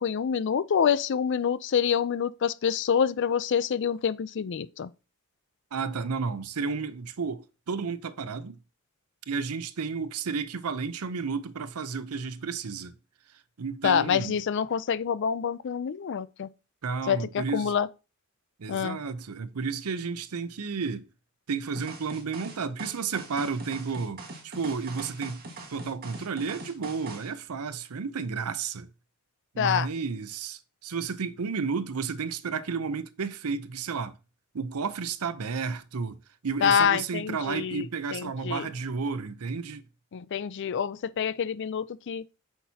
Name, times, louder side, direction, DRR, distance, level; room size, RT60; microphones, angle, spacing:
voice 1, 0.0-4.9 13.8-16.5 17.1-17.9 18.7-19.0 29.6-29.9 36.6-37.9 38.1-38.7 40.1-42.2, left 7 dB, 55° left, 0.4 m, -26 dB
voice 2, 5.7-8.6 9.3-12.9 13.6-14.4 16.8-17.7 18.6-21.1 21.5-25.4 25.7-28.9 29.5-34.1 34.5-36.2 36.4-39.8, right 5 dB, 90° right, 0.6 m, -32 dB
sound 1, 21.8-27.3, right 3 dB, 45° right, 1.6 m, -42 dB
8.4 x 5.9 x 2.8 m
head